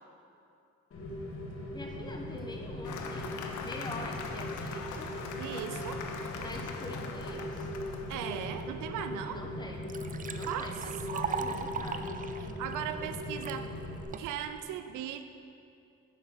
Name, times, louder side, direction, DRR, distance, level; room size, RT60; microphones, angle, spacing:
Rain, 0.9-14.0, left 1 dB, 45° left, 1.2 m, -39 dB
voice 1, 1.7-5.2 6.4-7.7 9.3-9.9 10.3-12.3, left 1 dB, 15° left, 1 dB, 1.0 m, -44 dB
Cheering / Applause, 2.8-8.6, left 5 dB, 80° left, 0.8 m, -42 dB
voice 2, 5.4-6.0 8.1-9.4 10.5-10.8 11.1-11.4 12.4-13.7 14.2-15.4, right 10 dB, 90° right, 9 dB, 0.5 m, -38 dB
Liquid, 9.1-9.2 9.6-13.6 14.1-14.6, right 6 dB, 30° right, 0.4 m, -39 dB
8.0 x 5.7 x 4.6 m, 2.5 s
cardioid pair, 90°, 30 cm